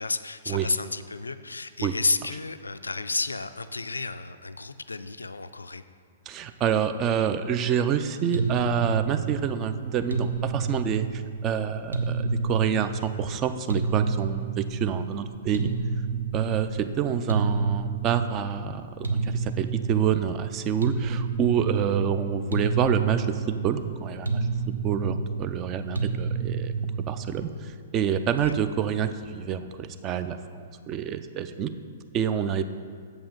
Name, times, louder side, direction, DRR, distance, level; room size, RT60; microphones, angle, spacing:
voice 1, 0.0-5.8 28.4-28.5, left 3 dB, 80° left, 12 dB, 0.3 m, -31 dB
voice 2, 6.3-15.7 16.3-26.7 27.1-31.7 32.1-32.6, right 8 dB, 25° right, 10 dB, 0.4 m, -27 dB
sound 1, 8.3-27.6, right 4 dB, 80° right, 0.7 m, -30 dB
7.1 x 5.5 x 5.3 m, 2.1 s
figure-of-eight pair, 115°, 0 cm